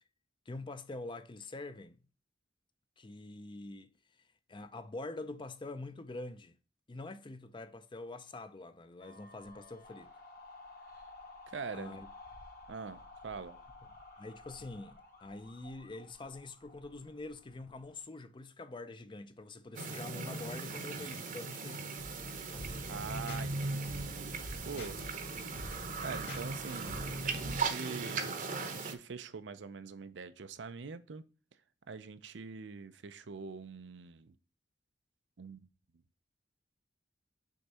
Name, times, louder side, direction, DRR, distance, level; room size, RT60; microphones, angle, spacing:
voice 1, 0.5-2.0 3.0-3.9 4.5-6.6 6.9-10.1 11.7-12.1 14.2-21.9, left 2 dB, 25° left, 0.5 m, -45 dB
sound 1, 9.0-18.0, left 2 dB, 55° left, 1.8 m, -54 dB
voice 2, 11.5-12.0 12.7-13.6 22.9-24.4 24.7-25.0 26.0-28.4 28.6-31.2 31.9-34.4 35.4-35.7, right 5 dB, 85° right, 0.6 m, -44 dB
sound 2, 19.8-28.9, right 3 dB, 50° right, 0.8 m, -38 dB
sound 3, 22.0-27.6, left 1 dB, 70° left, 1.9 m, -47 dB
6.5 x 3.6 x 4.2 m
head